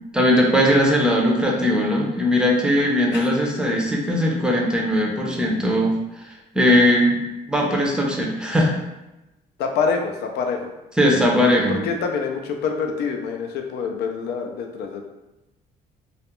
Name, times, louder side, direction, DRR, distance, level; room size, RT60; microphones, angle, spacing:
voice 1, 0.1-5.9 6.5-7.2 7.5-8.7 11.0-11.8, equal, 5° right, -2 dB, 0.5 m, -19 dB
voice 2, 9.6-10.7 11.3-15.0, left 5 dB, 75° left, 4 dB, 0.4 m, -26 dB
2.3 x 2.1 x 2.9 m, 0.99 s
cardioid pair, 110°, 17 cm